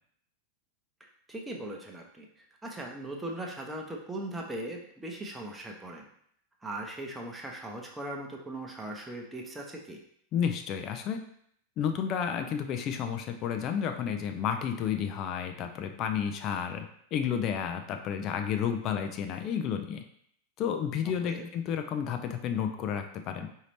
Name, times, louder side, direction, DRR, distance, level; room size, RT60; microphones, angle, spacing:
voice 1, 1.0-2.3 2.6-6.1 6.6-10.0 21.1-21.5, right 1 dB, 10° right, 0 dB, 0.8 m, -39 dB
voice 2, 10.3-11.2 11.8-20.0 20.6-23.5, left 8 dB, 35° left, 6 dB, 0.4 m, -31 dB
4.9 x 2.7 x 3.2 m, 0.68 s
figure-of-eight pair, 90°, 0 cm